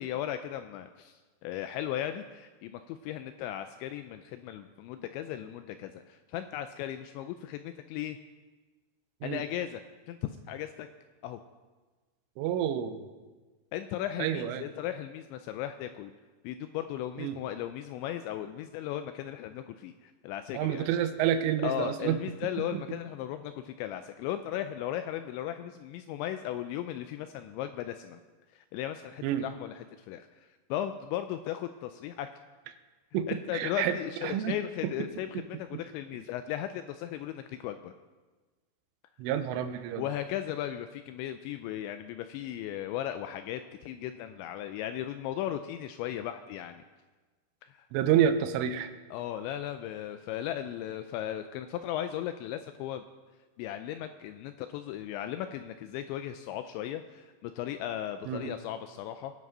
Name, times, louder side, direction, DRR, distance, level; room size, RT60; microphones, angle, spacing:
voice 1, 0.0-8.2 9.2-9.8 10.1-10.9 11.2-11.4 13.7-16.1 16.4-20.9 21.6-28.2 28.5-30.3 30.7-32.3 33.3-37.9 40.0-46.8 47.6-47.9 49.1-53.0 53.6-59.3, left 11 dB, 85° left, 9 dB, 2.6 m, -36 dB
voice 2, 12.4-13.1 14.2-14.6 17.2-17.4 20.5-22.2 22.7-22.8 29.2-29.4 33.1-34.0 34.2-34.6 34.8-34.9 35.7-35.8 39.2-40.1 47.9-48.9 58.3-58.5, right 10 dB, 85° right, 9 dB, 3.3 m, -29 dB
20.5 x 7.5 x 5.4 m, 1.3 s
omnidirectional pair, 5.6 m